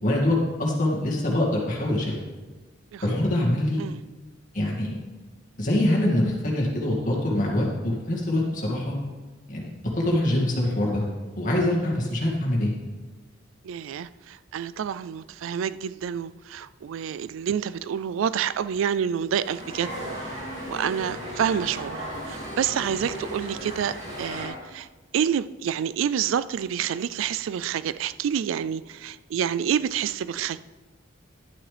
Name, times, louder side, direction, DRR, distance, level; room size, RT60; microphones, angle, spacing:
voice 1, 0.0-2.2 3.0-3.8 4.5-5.0 5.6-9.0 9.5-9.7 10.0-11.0 11.4-12.7, left 1 dB, 45° left, 2.1 m, -24 dB
voice 2, 13.6-19.9 20.2-20.4 20.7-24.9 25.1-30.6, right 8 dB, 85° right, 0.3 m, -28 dB
sound 1, 19.4-24.5, right 1 dB, 35° right, 2.6 m, -35 dB
11.0 x 8.6 x 3.4 m
head